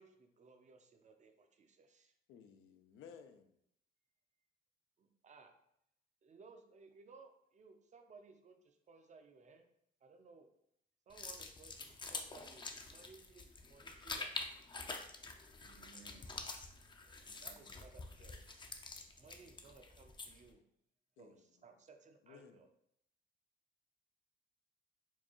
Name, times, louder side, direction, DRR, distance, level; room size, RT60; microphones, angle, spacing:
voice 1, 0.0-2.1 5.0-5.5 6.2-9.6 10.0-10.5 11.1-14.6 17.1-17.2 17.4-18.5 19.2-20.6 21.2-22.7, right 4 dB, 35° right, 0.5 m, -60 dB
voice 2, 2.3-3.6 21.2-21.4 22.2-22.7, left 7 dB, 85° left, 0.4 m, -58 dB
sound 1, 11.1-20.5, left 3 dB, 25° left, 0.4 m, -47 dB
voice 3, 15.6-16.4 17.2-17.8, right 3 dB, 85° right, 0.8 m, -63 dB
4.5 x 2.2 x 2.9 m
cardioid pair, 90°, 20 cm